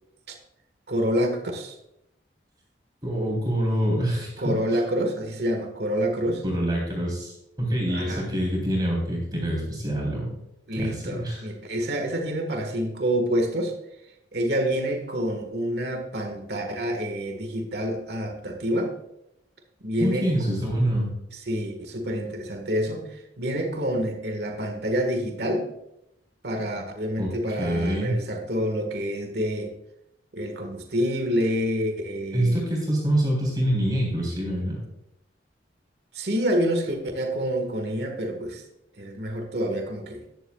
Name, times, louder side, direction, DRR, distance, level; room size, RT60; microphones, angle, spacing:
voice 1, 0.9-1.7 4.4-6.4 7.9-8.3 10.7-13.7 14.3-18.9 19.8-20.3 21.3-25.7 26.4-29.7 30.3-32.6 36.1-38.6 39.0-40.2, equal, 60° right, 4 dB, 1.7 m, -27 dB
voice 2, 3.0-4.8 6.4-10.3 10.7-11.5 20.0-21.1 27.2-27.3 27.6-28.2 32.3-34.8, right 1 dB, 20° right, -3 dB, 3.5 m, -26 dB
13.5 x 10.5 x 2.4 m, 0.82 s
head